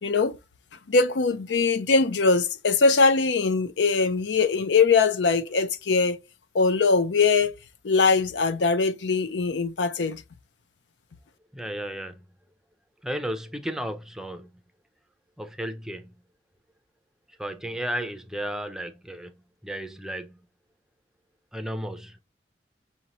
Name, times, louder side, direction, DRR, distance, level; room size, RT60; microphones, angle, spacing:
voice 1, 0.0-0.4 0.9-6.2 6.5-7.5 7.8-10.2, left 4 dB, 90° left, 0.5 m, -22 dB
voice 2, 11.5-12.2 13.0-14.5 15.4-16.1 17.3-19.4 19.6-20.4 21.5-22.2, right 1 dB, 5° right, 0.4 m, -34 dB
5.6 x 2.8 x 2.9 m
head